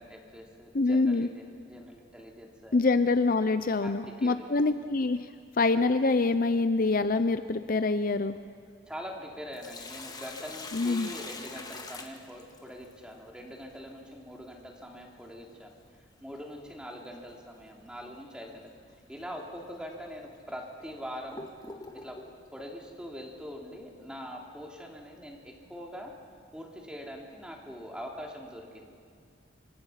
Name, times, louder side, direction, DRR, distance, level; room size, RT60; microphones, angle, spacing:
voice 1, 0.0-2.8 3.8-3.9 4.2-4.5 8.9-18.7 19.1-21.4 21.9-22.2 22.5-26.1 26.5-28.9, equal, 5° right, 0 dB, 3.3 m, -43 dB
voice 2, 0.7-1.3 2.7-5.3 5.6-8.4 10.7-11.1, left 3 dB, 45° left, 11 dB, 0.6 m, -25 dB
Sink (filling or washing), 9.5-12.9 15.3-15.4 17.3-17.5 18.0-18.1 18.9-19.0 19.7-19.8 20.5-22.4, left 3 dB, 20° left, 1.8 m, -43 dB
29.0 x 25.5 x 5.8 m, 2.3 s
head